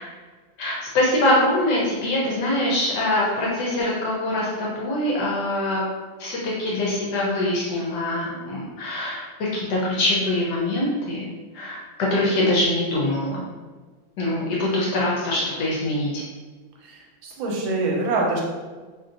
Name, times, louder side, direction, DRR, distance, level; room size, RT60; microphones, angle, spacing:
voice 1, 0.6-5.8 6.2-11.3 11.5-11.8 12.1-13.4 14.2-16.2, left 1 dB, 70° left, -4 dB, 1.1 m, -23 dB
voice 2, 16.8-18.4, right 2 dB, 85° right, -1 dB, 1.3 m, -25 dB
3.0 x 2.6 x 2.5 m, 1.4 s
omnidirectional pair, 2.1 m